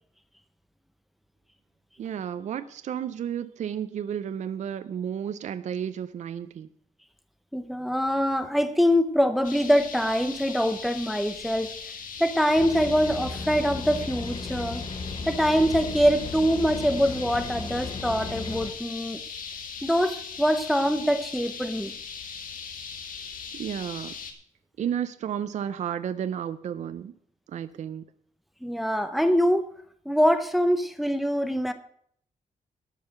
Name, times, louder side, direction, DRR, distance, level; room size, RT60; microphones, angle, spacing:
voice 1, 2.0-6.7 23.5-24.1 24.8-27.1 27.5-28.0, right 9 dB, 60° right, 12 dB, 0.5 m, -32 dB
voice 2, 7.5-11.7 12.2-14.8 15.3-19.2 19.8-21.9 28.6-29.6 30.1-31.7, equal, ahead, 9 dB, 0.7 m, -24 dB
sound 1, 9.4-24.3, left 6 dB, 80° left, 1.6 m, -39 dB
sound 2, 12.6-18.7, left 4 dB, 40° left, 1.0 m, -36 dB
12.5 x 5.6 x 7.7 m, 0.63 s
wide cardioid pair, 170°, 14 cm